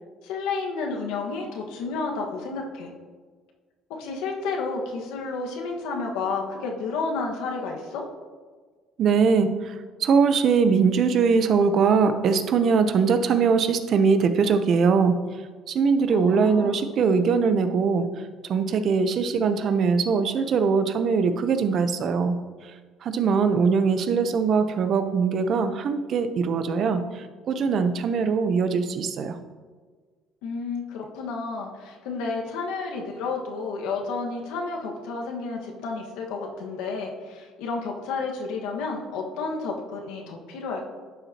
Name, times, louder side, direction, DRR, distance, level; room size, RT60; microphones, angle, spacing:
voice 1, 0.2-2.9 3.9-8.1 16.1-16.9 30.4-40.9, left 4 dB, 90° left, 1 dB, 1.4 m, -31 dB
voice 2, 9.0-9.7 10.0-15.2 15.7-18.1 18.5-22.4 23.0-29.3, right 5 dB, 50° right, 9 dB, 0.7 m, -21 dB
11.5 x 7.1 x 2.8 m, 1.5 s
cardioid pair, 115°, 0 cm